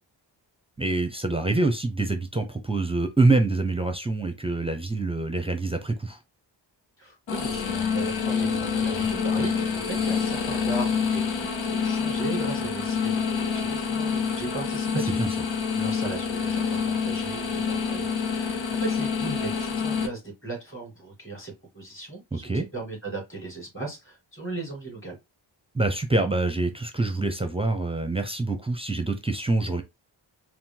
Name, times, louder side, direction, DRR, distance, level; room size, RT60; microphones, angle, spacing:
voice 1, 0.8-6.2 14.9-15.3 22.3-22.7 25.7-29.8, right 2 dB, 15° right, 0.6 m, -25 dB
voice 2, 7.0-25.1, right 3 dB, 25° left, 2.7 m, -37 dB
sound 1, 7.3-20.1, left 6 dB, 80° left, 0.9 m, -27 dB
4.4 x 2.2 x 3.8 m
wide cardioid pair, 100°, 45 cm